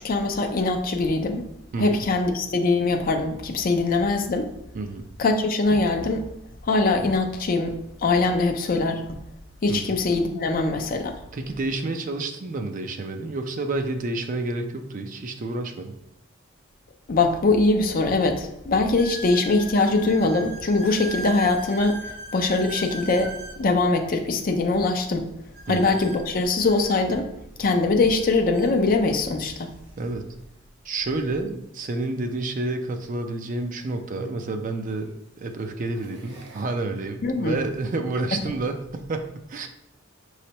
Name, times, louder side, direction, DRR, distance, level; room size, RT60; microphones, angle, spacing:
voice 1, 0.0-1.4 1.8-4.5 5.2-6.2 6.6-7.7 8.0-9.2 9.6-11.2 17.1-22.0 22.3-25.3 25.7-27.3 27.6-29.7 37.2-37.6 38.3-38.4, left 3 dB, 45° left, 5 dB, 0.5 m, -22 dB
voice 2, 11.3-15.9 25.7-25.9 30.0-30.2 30.8-35.1 35.4-39.7, right 2 dB, 40° right, 6 dB, 0.4 m, -29 dB
sound 1, 19.0-23.6 25.5-27.2 28.2-28.3 28.5-28.7 29.5-29.6 31.8-31.9 34.0-34.1 34.8-35.2 35.7-36.6, right 1 dB, 60° right, 0.9 m, -39 dB
5.2 x 3.2 x 2.9 m, 0.79 s
head